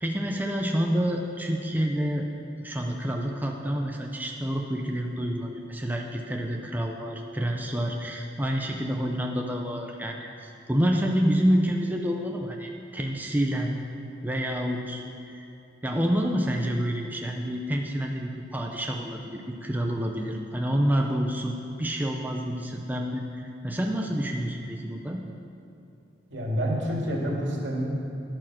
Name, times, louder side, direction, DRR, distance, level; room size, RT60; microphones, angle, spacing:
voice 1, 0.0-2.3 2.6-13.7 14.2-15.5 15.8-25.2, equal, 10° right, 1 dB, 0.6 m, -28 dB
voice 2, 26.3-27.9, equal, 80° right, -2 dB, 2.3 m, -28 dB
11.0 x 8.9 x 6.1 m, 2.6 s
head